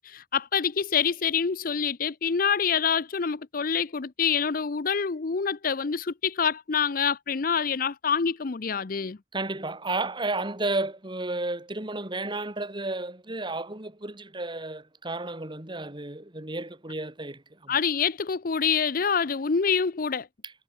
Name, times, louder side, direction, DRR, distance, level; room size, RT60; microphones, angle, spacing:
voice 1, 0.0-9.2 17.7-20.3, left 6 dB, 55° left, 0.6 m, -26 dB
voice 2, 9.3-17.8, right 2 dB, 30° right, 2.7 m, -32 dB
head